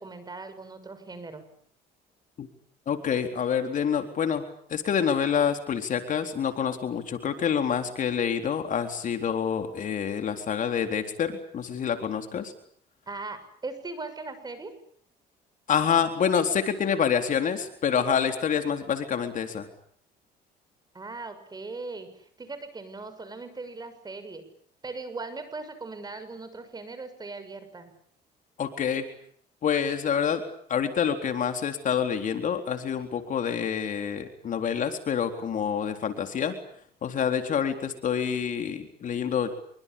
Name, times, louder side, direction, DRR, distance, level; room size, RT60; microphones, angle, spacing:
voice 1, 0.0-1.5 13.1-14.7 20.9-24.4 24.8-27.9, right 3 dB, 25° right, 11 dB, 6.7 m, -39 dB
voice 2, 2.9-4.4 4.7-12.5 15.7-19.7 28.6-29.0 29.6-30.4 30.7-36.5 37.0-39.5, left 7 dB, 50° left, 6 dB, 3.9 m, -27 dB
26.0 x 24.5 x 8.7 m, 0.63 s
cardioid pair, 110°, 17 cm